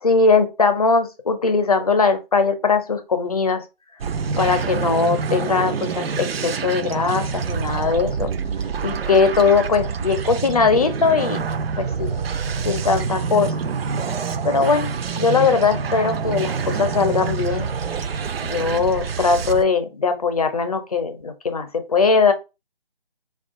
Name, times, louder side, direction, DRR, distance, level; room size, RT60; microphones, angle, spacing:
voice 1, 0.0-3.6 4.4-8.3 8.8-11.5 11.8-12.2 12.6-13.6 14.4-17.7 18.4-22.3, left 4 dB, 40° left, 8 dB, 0.6 m, -20 dB
sound 1, 4.0-19.6, right 5 dB, 75° right, 0.5 m, -26 dB
4.5 x 2.3 x 2.5 m, 0.27 s
figure-of-eight pair, 160°, 30 cm